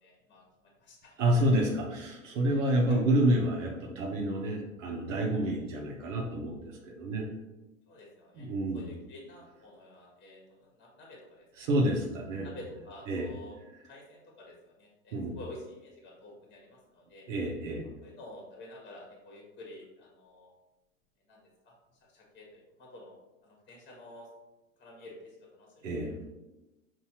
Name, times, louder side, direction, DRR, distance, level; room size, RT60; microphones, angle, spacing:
voice 1, 0.0-0.4 0.8-1.5 2.5-3.0 4.0-4.1 7.9-8.5 8.7-11.7 12.4-17.3 18.0-20.5 21.3-21.7 22.1-23.1 23.4-24.3 24.8-26.2, left 1 dB, 25° left, -1 dB, 1.3 m, -50 dB
voice 2, 1.2-7.3 8.3-8.9 11.6-12.5 13.1-13.3 15.1-15.4 17.3-17.8 25.8-26.1, right 1 dB, 65° right, 0 dB, 0.9 m, -29 dB
5.4 x 2.6 x 2.8 m, 1.0 s
hypercardioid pair, 100°, 40 cm